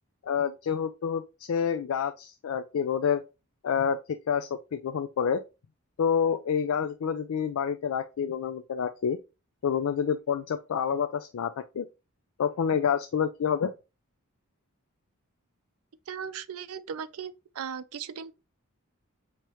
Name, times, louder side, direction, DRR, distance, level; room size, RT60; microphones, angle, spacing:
voice 1, 0.2-3.2 3.6-4.0 4.3-5.4 6.0-9.2 9.6-11.9 12.4-13.7, left 7 dB, 70° left, 0.4 m, -28 dB
voice 2, 16.1-18.3, right 7 dB, 75° right, 0.4 m, -37 dB
4.7 x 2.9 x 2.9 m
head